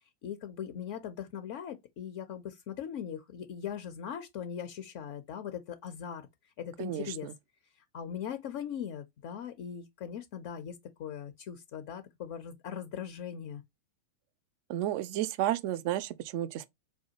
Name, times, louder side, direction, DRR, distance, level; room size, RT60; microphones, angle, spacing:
voice 1, 0.2-7.3 7.9-13.6, left 8 dB, 45° left, 0.4 m, -40 dB
voice 2, 6.8-7.3 14.7-16.7, right 13 dB, 45° right, 0.3 m, -32 dB
4.2 x 2.2 x 2.7 m
figure-of-eight pair, 90°, 0 cm